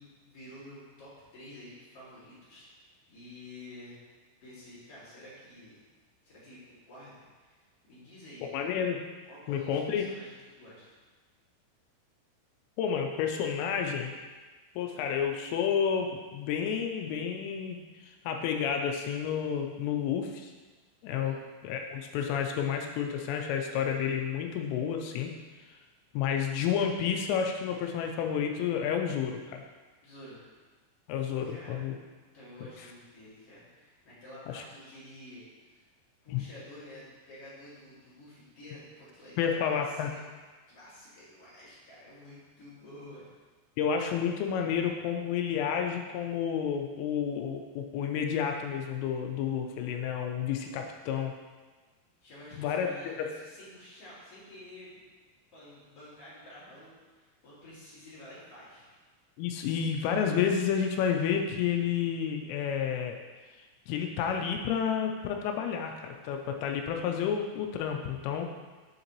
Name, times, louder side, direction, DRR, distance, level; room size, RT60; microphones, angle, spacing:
voice 1, 0.0-4.0 4.4-5.8 6.2-8.5 9.2-10.8 21.2-21.4 30.0-30.4 31.4-31.8 32.3-35.9 36.2-40.2 40.7-43.3 52.2-55.0 55.5-58.9, left 1 dB, 40° left, -10 dB, 2.4 m, -50 dB
voice 2, 8.4-9.0 9.5-10.0 12.8-14.2 14.8-20.5 21.0-21.4 21.6-25.3 26.1-29.6 31.1-32.0 34.5-34.6 36.3-36.5 39.4-40.1 43.8-51.3 52.5-53.3 59.4-63.2 63.9-68.5, left 7 dB, 90° left, 3 dB, 3.1 m, -30 dB
7.4 x 6.5 x 3.0 m, 1.3 s
omnidirectional pair, 5.6 m